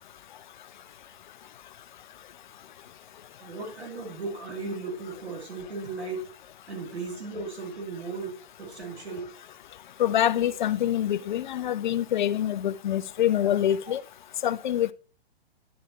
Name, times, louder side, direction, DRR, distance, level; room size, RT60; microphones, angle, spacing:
voice 1, 3.4-6.3 6.7-9.3, right 3 dB, 90° right, 2.6 m, -36 dB
voice 2, 10.0-14.0 14.4-14.9, left 11 dB, 50° left, 0.4 m, -25 dB
10.5 x 3.9 x 4.0 m
hypercardioid pair, 130°, 32 cm